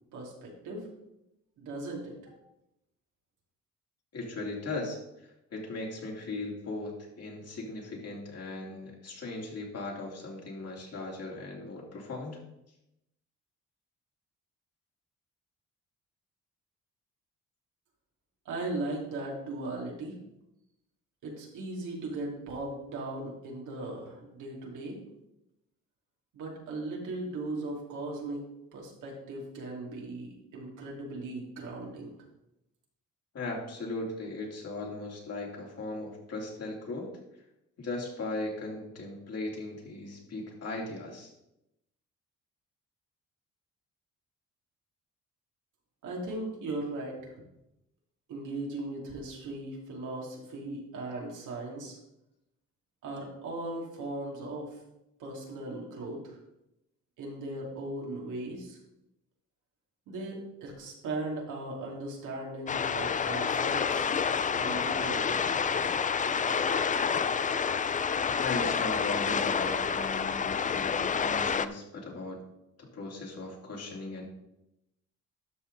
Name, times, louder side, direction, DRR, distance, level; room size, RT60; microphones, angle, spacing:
voice 1, 0.1-0.9 1.6-2.4 18.4-20.2 21.2-25.0 26.3-28.4 28.7-32.1 46.0-47.3 48.3-52.0 53.0-54.8 55.2-56.4 57.2-58.8 60.1-64.1 64.5-65.5, right 2 dB, 80° right, -2 dB, 2.8 m, -38 dB
voice 2, 4.1-12.4 33.3-37.1 37.8-41.3 68.4-72.4 72.9-74.3, left 2 dB, 55° left, -1 dB, 3.0 m, -38 dB
sound 1, 62.7-71.7, left 6 dB, 25° left, 0.4 m, -28 dB
12.5 x 5.7 x 4.0 m, 0.86 s
cardioid pair, 90°, 30 cm